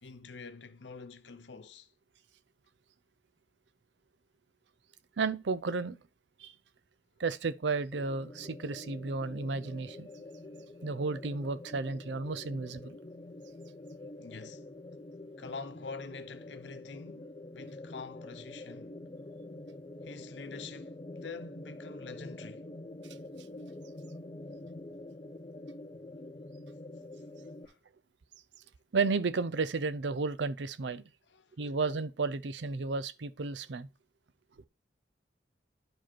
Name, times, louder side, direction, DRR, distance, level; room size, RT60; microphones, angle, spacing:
voice 1, 0.0-1.9 14.2-14.7 15.4-19.0 20.0-22.7 27.6-27.8 31.3-31.7, left 4 dB, 90° left, 0.9 m, -46 dB
voice 2, 5.2-6.0 6.4-6.5 7.2-10.1 10.8-13.0 28.9-31.0 31.6-33.9, right 4 dB, 85° right, 0.6 m, -33 dB
sound 1, 7.9-27.6, left 2 dB, 30° left, 0.5 m, -46 dB
11.0 x 5.0 x 4.5 m
head